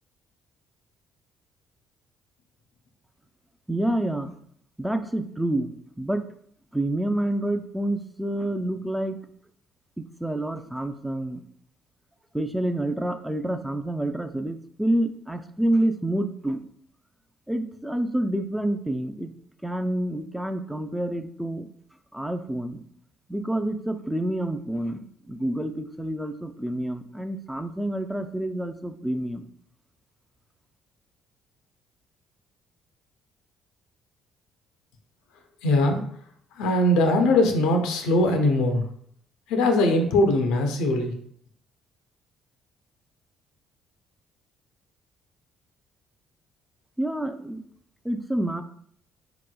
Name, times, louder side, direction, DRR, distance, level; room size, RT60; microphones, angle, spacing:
voice 1, 3.7-4.3 4.8-6.3 6.7-9.2 10.0-11.4 12.3-16.7 17.5-19.3 19.6-21.7 22.1-22.8 23.3-29.4 47.0-47.6 48.0-48.6, right 1 dB, 5° right, 7 dB, 0.3 m, -28 dB
voice 2, 35.6-36.0 36.6-38.8 39.5-41.2, left 1 dB, 75° left, 4 dB, 0.5 m, -21 dB
3.6 x 2.9 x 2.3 m, 0.63 s
hypercardioid pair, 50°, 0 cm